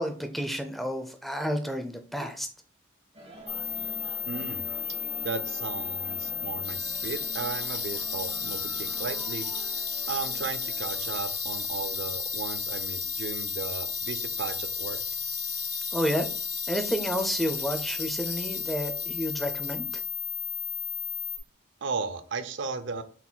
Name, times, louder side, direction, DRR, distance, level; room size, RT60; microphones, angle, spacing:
voice 1, 0.0-2.5 15.9-16.2 16.7-19.8, equal, ahead, 6 dB, 0.4 m, -30 dB
sound 1, 3.1-11.4, equal, 30° right, 1.0 m, -47 dB
sound 2, 3.5-21.4, left 7 dB, 15° left, 0.8 m, -34 dB
voice 2, 4.3-4.6 5.2-9.5 10.1-15.0 21.8-23.0, right 4 dB, 65° right, 10 dB, 0.5 m, -35 dB
sound 3, 6.6-20.1, left 4 dB, 55° left, 2.0 m, -39 dB
5.7 x 4.1 x 2.2 m, 0.42 s
head